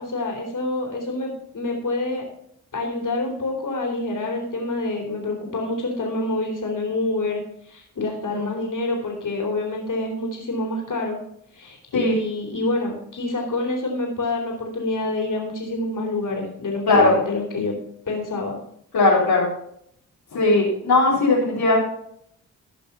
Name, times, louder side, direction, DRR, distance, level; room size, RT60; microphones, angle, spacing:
voice 1, 0.0-2.2 2.7-11.2 11.5-17.7 18.1-18.6, left 2 dB, 55° left, 0 dB, 3.9 m, -27 dB
voice 2, 18.9-19.5 20.3-21.8, left 2 dB, 80° left, -5 dB, 3.8 m, -18 dB
15.0 x 5.5 x 5.6 m, 0.70 s
supercardioid pair, 45°, 37 cm